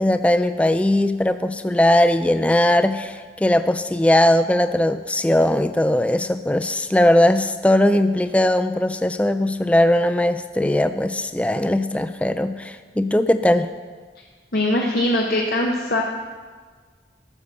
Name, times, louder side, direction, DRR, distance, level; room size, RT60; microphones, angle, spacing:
voice 1, 0.0-13.7, left 1 dB, 5° left, 10 dB, 0.3 m, -19 dB
voice 2, 14.5-16.0, left 1 dB, 55° left, 0 dB, 1.0 m, -21 dB
12.5 x 7.1 x 6.8 m, 1.5 s
head